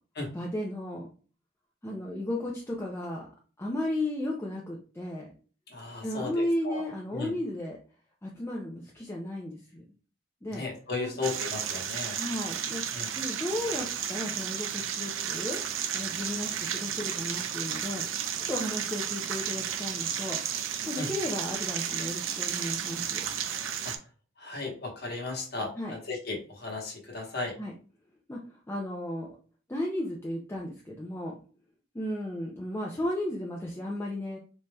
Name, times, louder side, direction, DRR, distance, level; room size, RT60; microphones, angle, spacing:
voice 1, 0.3-1.1 1.8-3.3 3.6-5.3 6.0-7.8 8.2-9.8 10.4-10.6 11.0-11.2 12.2-12.8 13.1-15.6 15.9-18.0 18.5-20.4 20.9-23.2 25.8-26.0 27.6-27.7 28.3-28.4 28.7-29.4 29.7-31.4 31.9-34.4, left 1 dB, 15° left, -2 dB, 0.5 m, -34 dB
voice 2, 5.7-6.8 7.1-7.3 10.5-12.2 12.9-13.1 21.0-21.1 23.8-24.0 24.4-27.6, left 3 dB, 50° left, 0 dB, 1.1 m, -35 dB
sound 1, 11.2-24.0, right 9 dB, 80° right, 0.4 m, -33 dB
4.0 x 3.2 x 2.2 m, 0.38 s
head